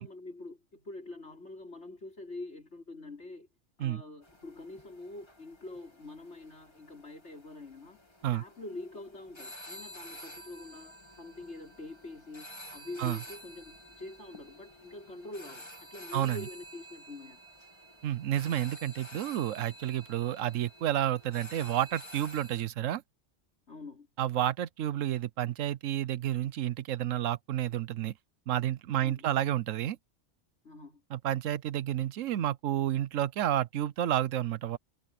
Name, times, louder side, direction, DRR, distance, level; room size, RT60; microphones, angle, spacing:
voice 1, 0.0-3.5 3.8-8.0 8.3-17.4 23.7-24.1 29.0-29.3 30.6-31.0, left 2 dB, 60° left, 5.0 m, -45 dB
sound 1, 4.2-22.7, equal, 20° left, 2.5 m, -50 dB
voice 2, 16.1-16.5 18.0-23.0 24.2-28.1 28.5-30.0 31.1-34.8, right 12 dB, 85° right, 1.1 m, -30 dB
omnidirectional pair, 1.3 m